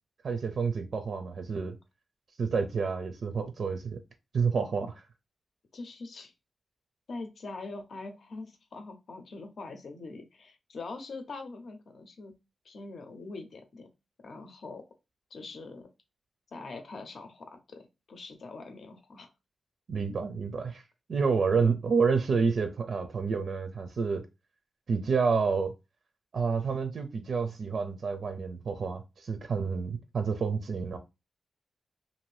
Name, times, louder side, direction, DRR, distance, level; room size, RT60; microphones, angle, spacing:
voice 1, 0.2-1.8 2.4-4.0 4.3-5.0 19.9-20.8 21.1-24.2 24.9-25.7 26.3-31.0, right 5 dB, 65° right, 0.4 m, -29 dB
voice 2, 5.7-6.3 7.1-12.3 12.6-13.9 14.2-14.8 15.3-15.9 16.5-19.3 21.5-21.7, left 3 dB, 65° left, 0.6 m, -43 dB
2.6 x 2.6 x 3.2 m
wide cardioid pair, 110°, 0 cm